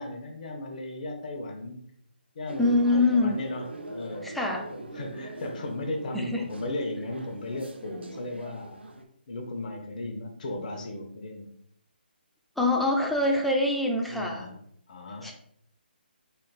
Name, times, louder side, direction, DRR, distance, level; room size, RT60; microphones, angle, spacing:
voice 1, 0.0-1.8 2.3-4.3 4.7-8.8 9.3-11.5 14.1-14.6 14.9-15.3, left 2 dB, 50° left, 4 dB, 0.9 m, -36 dB
sound 1, 2.5-9.0, right 2 dB, 85° right, 0.7 m, -42 dB
voice 2, 2.6-3.4 4.2-4.7 6.1-6.4 12.6-14.5 15.2-15.3, left 2 dB, ahead, 0 dB, 0.5 m, -24 dB
5.4 x 3.3 x 2.4 m, 0.69 s
figure-of-eight pair, 145°, 6 cm